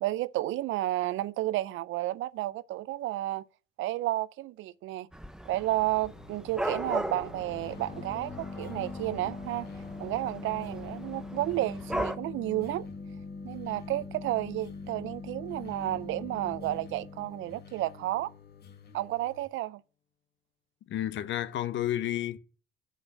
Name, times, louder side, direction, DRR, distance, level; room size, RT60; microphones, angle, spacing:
voice 1, 0.0-3.4 3.8-5.1 5.5-9.7 10.0-12.9 13.4-18.3 18.9-19.8, right 16 dB, 85° right, 0.4 m, -32 dB
Dog / Cat, 5.1-12.2, right 1 dB, 5° right, 0.6 m, -38 dB
sound 1, 6.0-19.5, left 7 dB, 55° left, 1.2 m, -53 dB
sound 2, 7.1-18.6, left 4 dB, 40° left, 1.3 m, -42 dB
voice 2, 20.9-22.4, left 12 dB, 70° left, 0.8 m, -31 dB
6.2 x 5.4 x 7.0 m
cardioid pair, 90°, 20 cm